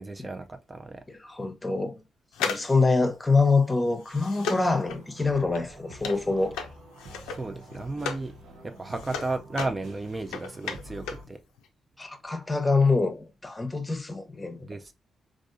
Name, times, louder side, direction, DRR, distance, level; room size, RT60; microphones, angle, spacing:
voice 1, 0.0-1.0 7.3-8.3 8.6-11.4 14.6-14.9, right 2 dB, 30° right, 0.3 m, -34 dB
voice 2, 1.2-2.0 2.4-6.5 12.0-14.7, left 3 dB, 20° left, 0.8 m, -25 dB
sound 1, 2.3-8.3 8.6-11.3 11.6-11.7, left 6 dB, 90° left, 0.4 m, -36 dB
sound 2, 4.8-11.2, right 1 dB, 75° right, 0.7 m, -47 dB
3.4 x 2.4 x 2.5 m
supercardioid pair, 50°, 0 cm